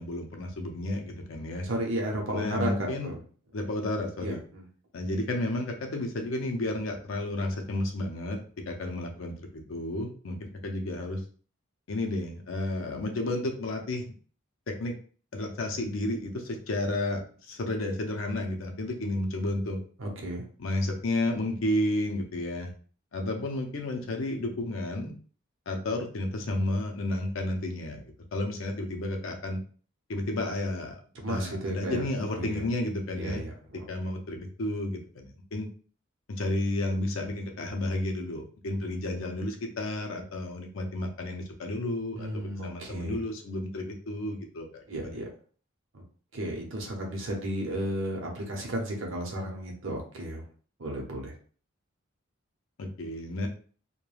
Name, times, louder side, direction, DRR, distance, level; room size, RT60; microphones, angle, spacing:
voice 1, 0.0-1.7 2.3-3.1 3.5-4.4 4.9-8.4 8.7-11.2 11.9-14.0 14.7-14.9 15.3-19.8 20.6-22.7 23.1-25.1 25.7-29.6 30.1-31.0 31.2-33.5 33.9-35.7 36.3-45.2 52.8-53.5, left 1 dB, 70° left, 3 dB, 0.5 m, -32 dB
voice 2, 1.6-3.2 4.2-4.6 20.0-20.4 31.1-32.1 32.3-32.7 33.2-33.5 42.2-43.2 44.9-45.3 45.9-46.0 46.3-50.4 50.8-51.3, right 1 dB, 65° right, 0 dB, 0.7 m, -33 dB
2.3 x 2.2 x 3.1 m, 0.42 s
head